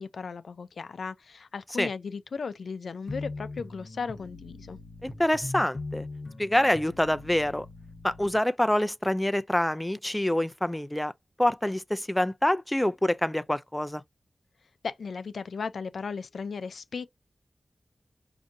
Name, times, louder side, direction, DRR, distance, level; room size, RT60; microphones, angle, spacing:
voice 1, 0.0-4.8 14.8-17.1, left 5 dB, 90° left, 0.4 m, -36 dB
sound 1, 3.1-8.4, left 2 dB, 60° left, 0.8 m, -40 dB
voice 2, 5.0-6.1 6.4-7.7 8.0-11.1 11.4-14.0, left 1 dB, 10° left, 0.3 m, -26 dB
4.8 x 2.6 x 2.5 m
cardioid pair, 55°, 0 cm